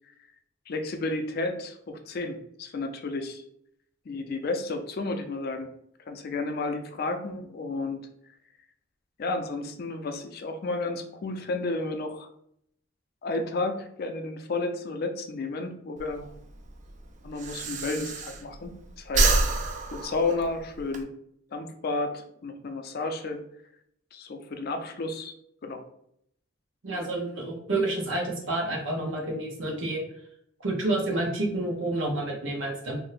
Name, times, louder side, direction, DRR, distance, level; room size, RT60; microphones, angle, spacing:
voice 1, 0.7-3.4 4.1-5.7 6.1-8.0 9.2-12.3 13.2-16.3 17.2-19.4 19.9-21.1 21.5-23.4 24.1-25.3 25.6-25.8, left 3 dB, 55° left, 6 dB, 0.4 m, -32 dB
Breathing, 16.0-18.7 19.0-21.0, right 3 dB, 40° right, 0.3 m, -27 dB
voice 2, 26.8-30.0 30.6-33.0, right 2 dB, 80° right, 0 dB, 0.8 m, -29 dB
2.6 x 2.1 x 3.9 m, 0.71 s
head